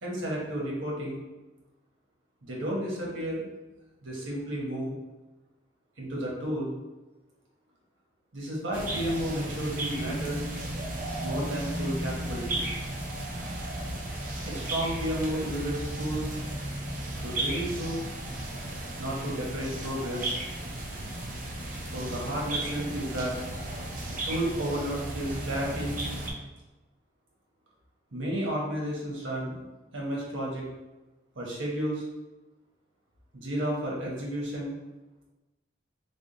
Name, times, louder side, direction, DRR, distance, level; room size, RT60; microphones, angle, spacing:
voice 1, 0.0-1.2 2.4-3.4 4.0-5.0 6.0-6.7 8.3-10.4 11.2-12.7 14.4-16.3 17.2-18.0 19.0-20.3 21.9-23.4 24.2-25.9 28.1-29.6 29.9-30.7 31.4-32.0 33.3-34.7, right 1 dB, 80° right, -3 dB, 1.0 m, -32 dB
sound 1, 8.7-26.3, right 1 dB, 45° right, 0.5 m, -34 dB
3.4 x 2.1 x 3.8 m, 1.1 s
head